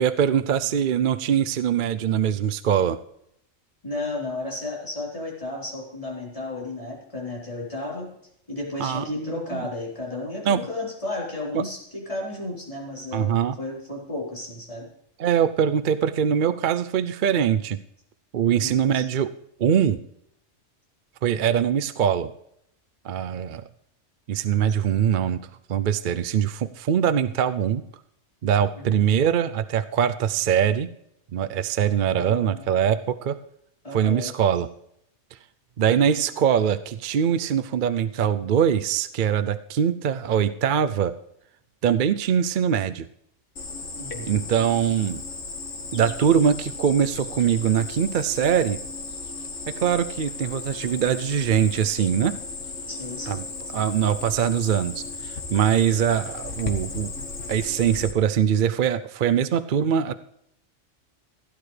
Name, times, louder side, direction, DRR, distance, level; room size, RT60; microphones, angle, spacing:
voice 1, 0.0-3.0 8.8-9.6 10.5-10.6 11.5-11.6 13.1-13.6 15.2-17.8 18.3-19.3 19.6-20.0 21.2-22.3 23.0-23.6 24.3-25.4 25.7-27.8 28.4-30.9 31.3-33.4 33.9-34.7 35.8-41.1 41.8-43.1 44.3-45.2 45.9-48.8 49.8-52.4 53.3-53.4 53.7-57.1 57.5-60.1, right 8 dB, 55° right, 12 dB, 0.6 m, -22 dB
voice 2, 3.8-8.1 8.5-14.9 18.4-19.1 28.8-29.1 32.1-33.0 33.8-34.3 36.0-36.3 44.0-44.5 52.9-53.4, left 2 dB, 30° left, -4 dB, 4.3 m, -33 dB
Cricket, 43.6-58.1, left 3 dB, 90° left, 1.8 m, -35 dB
16.5 x 11.0 x 3.3 m, 0.74 s
omnidirectional pair, 1.2 m